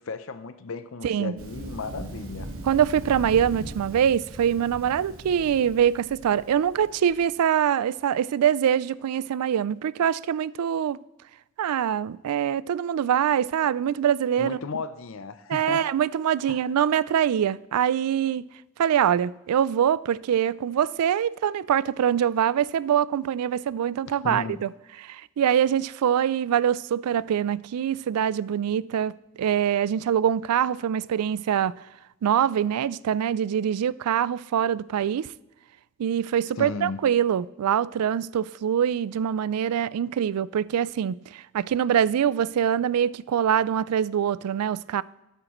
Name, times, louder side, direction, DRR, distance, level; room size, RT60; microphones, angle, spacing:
voice 1, 0.0-2.5 14.4-15.8 16.5-16.6 24.1-24.6 36.6-37.0, left 4 dB, 60° left, 0.5 m, -35 dB
voice 2, 1.0-1.4 2.6-11.0 11.6-14.6 15.5-18.5 18.8-24.7 25.0-31.7 32.2-35.3 36.0-45.0, right 9 dB, 90° right, 0.3 m, -24 dB
Thunder, 1.4-7.2, right 1 dB, 65° right, 1.4 m, -40 dB
12.5 x 9.8 x 3.1 m
head